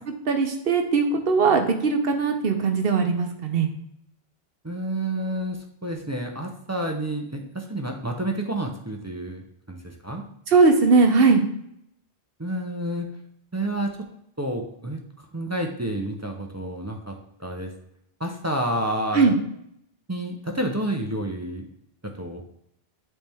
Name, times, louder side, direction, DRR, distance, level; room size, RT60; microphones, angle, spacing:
voice 1, 0.3-3.7 10.5-11.4 19.1-19.4, right 4 dB, 65° right, 5 dB, 1.0 m, -19 dB
voice 2, 4.6-10.2 12.4-13.1 13.5-13.9 14.4-17.1 17.4-17.7 18.2-19.4 20.1-21.7 22.2-22.4, right 1 dB, 20° right, 1 dB, 0.5 m, -29 dB
8.9 x 3.3 x 3.4 m, 0.74 s
omnidirectional pair, 1.1 m